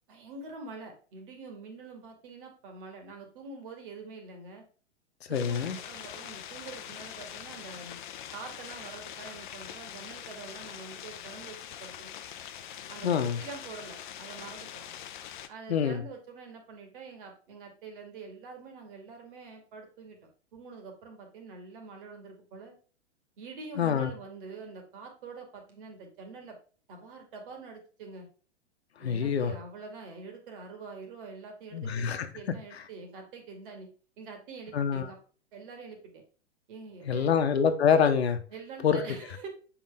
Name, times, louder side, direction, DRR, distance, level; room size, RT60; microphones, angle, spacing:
voice 1, 0.1-4.6 5.3-8.0 8.3-12.1 12.9-14.9 15.5-22.7 23.4-26.6 26.9-28.3 29.0-33.9 34.2-35.2 35.5-36.2 36.7-37.3 38.5-39.5, right 4 dB, 50° right, 2.4 m, -45 dB
voice 2, 5.3-5.8 13.0-13.4 15.7-16.0 23.8-24.1 29.0-29.5 31.7-32.3 34.7-35.1 37.1-38.4 38.8-39.0, left 7 dB, 65° left, 1.1 m, -25 dB
sound 1, 5.3-15.5, left 10 dB, 45° left, 0.7 m, -43 dB
7.3 x 4.9 x 3.4 m
figure-of-eight pair, 110°, 35 cm